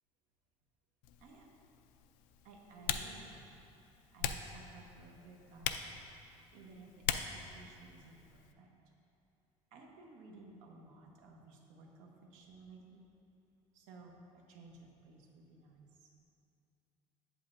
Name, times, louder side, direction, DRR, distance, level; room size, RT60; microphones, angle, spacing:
Typing, 1.0-8.5, left 9 dB, 85° left, 0.4 m, -42 dB
voice 1, 1.2-1.5 2.4-3.6 4.1-6.0 6.2-8.7 9.7-13.1 13.7-16.1, right 3 dB, 85° right, 0 dB, 1.0 m, -56 dB
7.8 x 7.6 x 2.6 m, 2.7 s
cardioid pair, 135°, 13 cm